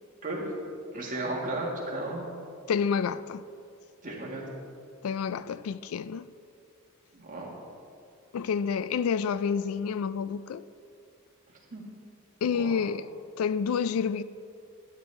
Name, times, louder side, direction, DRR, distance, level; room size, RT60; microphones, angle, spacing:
voice 1, 0.9-2.3 4.0-4.4 7.1-7.6 11.7-11.8 12.5-12.8, right 2 dB, 40° right, 2.1 m, -34 dB
voice 2, 2.7-3.4 5.0-6.3 8.3-10.6 12.4-13.1 13.4-14.2, left 6 dB, 85° left, 0.3 m, -29 dB
12.5 x 9.5 x 3.5 m
head